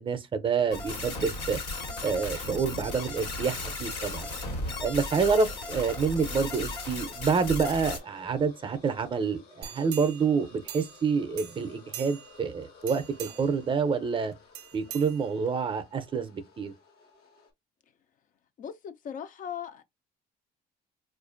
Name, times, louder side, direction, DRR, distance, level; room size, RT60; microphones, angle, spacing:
voice 1, 0.0-1.6 2.0-4.3 4.8-14.3 14.7-16.7, right 5 dB, 30° right, 0.5 m, -28 dB
sound 1, 0.7-8.0, left 2 dB, 85° left, 1.4 m, -35 dB
sound 2, 3.3-17.5, left 4 dB, 70° left, 1.2 m, -55 dB
sound 3, 9.6-11.1 11.4-12.4 12.8-13.6 14.5-15.7 16.1-16.2, right 11 dB, 80° right, 0.4 m, -43 dB
voice 2, 18.6-19.8, left 8 dB, 50° left, 0.5 m, -38 dB
4.3 x 2.5 x 2.5 m
cardioid pair, 110°, 17 cm